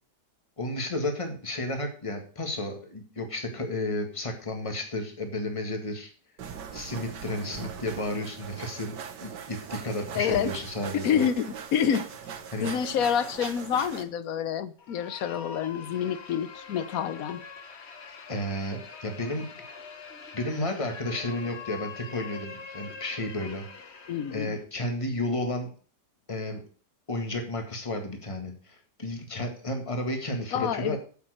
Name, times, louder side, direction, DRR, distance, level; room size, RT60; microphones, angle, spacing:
voice 1, 0.6-6.1 6.7-11.3 12.5-12.7 18.3-19.5 20.3-25.7 26.3-26.6 27.1-31.0, left 1 dB, 20° left, 1.9 m, -32 dB
sound 1, 6.4-14.0, right 7 dB, 85° right, 1.7 m, -40 dB
voice 2, 10.1-10.5 10.9-12.1 12.6-17.4 24.1-24.6 30.5-31.0, left 8 dB, 65° left, 1.1 m, -28 dB
sound 2, 14.8-24.6, left 5 dB, 45° left, 1.2 m, -44 dB
8.8 x 7.6 x 6.4 m
omnidirectional pair, 1.8 m